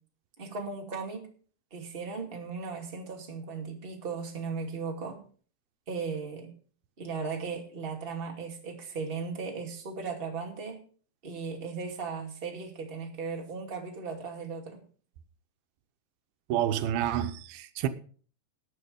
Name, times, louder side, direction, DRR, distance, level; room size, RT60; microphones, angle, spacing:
voice 1, 0.4-1.3 1.7-5.2 5.9-6.5 7.0-10.8 11.2-14.8, right 5 dB, 20° right, 1.9 m, -37 dB
voice 2, 16.5-17.9, right 11 dB, 90° right, 2.8 m, -29 dB
19.5 x 6.4 x 5.1 m
omnidirectional pair, 4.2 m